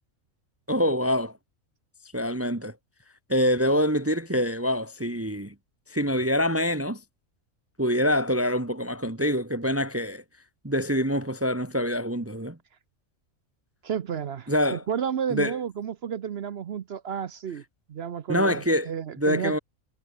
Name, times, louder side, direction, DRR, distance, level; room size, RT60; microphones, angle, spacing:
voice 1, 0.7-1.3 2.1-2.7 3.3-5.5 5.9-7.0 7.8-10.2 10.6-12.6 14.5-14.8 15.3-15.6 18.3-18.9 19.2-19.6, equal, 10° right, 1.3 m, -25 dB
voice 2, 13.8-17.6 17.9-19.6, right 8 dB, 55° right, 0.9 m, -31 dB
omnidirectional pair, 1.5 m